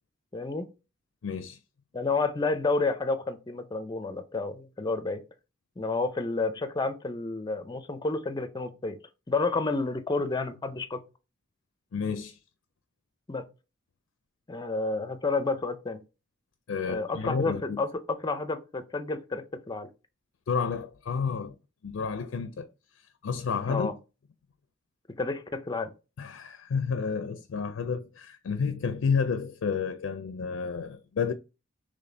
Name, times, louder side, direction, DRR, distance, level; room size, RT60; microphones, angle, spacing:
voice 1, 0.3-0.7 1.9-5.2 5.8-9.0 9.3-11.0 13.3-13.4 14.5-16.0 16.8-19.9 23.7-23.9 25.2-25.9, left 3 dB, 20° left, 0.5 m, -30 dB
voice 2, 1.2-1.6 11.9-12.4 16.7-17.8 20.5-21.5 21.8-22.7 23.2-23.9 26.2-31.3, left 5 dB, 80° left, 0.4 m, -30 dB
4.0 x 3.1 x 3.3 m
head